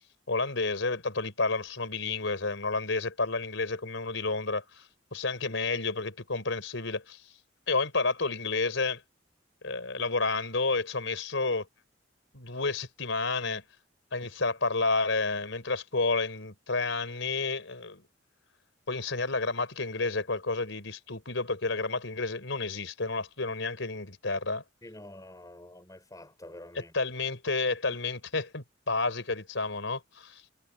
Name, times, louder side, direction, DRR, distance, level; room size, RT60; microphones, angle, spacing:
voice 1, 0.3-7.2 7.7-9.0 9.6-11.7 12.3-13.6 14.1-18.0 18.9-24.6 26.7-30.4, left 3 dB, 75° left, 4.2 m, -30 dB
voice 2, 24.8-26.9, left 1 dB, 20° left, 5.8 m, -48 dB
head